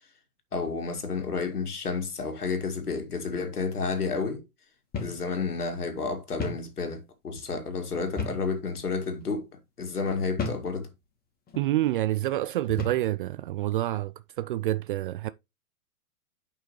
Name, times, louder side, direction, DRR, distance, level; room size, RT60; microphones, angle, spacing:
voice 1, 0.5-4.4 5.0-9.5 9.8-10.9, left 4 dB, 80° left, 2.2 m, -31 dB
sound 1, 4.9-5.2 5.6-5.7 6.4-6.7 8.2-8.5 9.2-9.4 10.4-10.7 11.5-11.7 12.7-13.1, left 4 dB, 20° left, 2.4 m, -33 dB
voice 2, 11.6-15.3, right 14 dB, 40° right, 0.4 m, -28 dB
9.2 x 5.6 x 3.1 m
figure-of-eight pair, 110°, 44 cm